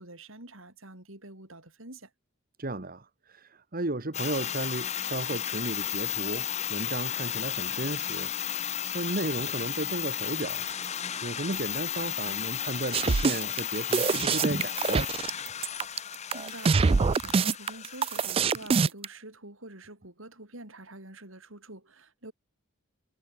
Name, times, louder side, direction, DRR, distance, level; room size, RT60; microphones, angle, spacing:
voice 1, 0.0-2.1 16.1-22.3, right 2 dB, 65° right, 5.3 m, -47 dB
voice 2, 2.6-8.3 8.9-10.6 11.2-15.1, right 2 dB, 40° right, 1.5 m, -34 dB
sound 1, 4.1-18.7, left 10 dB, 30° left, 0.8 m, -34 dB
sound 2, 12.9-19.1, right 5 dB, 25° right, 0.3 m, -25 dB
head